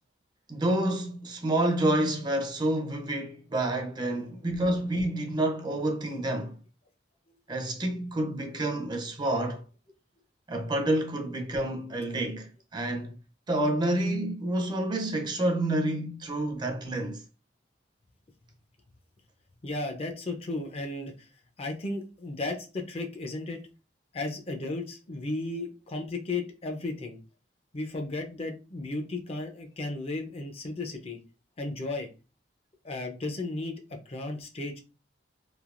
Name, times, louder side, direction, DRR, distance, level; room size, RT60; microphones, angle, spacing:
voice 1, 0.5-6.6 7.5-9.6 10.5-13.2 13.5-17.2, right 1 dB, 25° right, 0.5 m, -28 dB
voice 2, 19.6-21.3 21.6-23.6 24.1-27.2 27.7-31.2 31.6-32.1 32.8-34.8, left 2 dB, 35° left, 0.5 m, -34 dB
3.3 x 2.7 x 2.4 m
head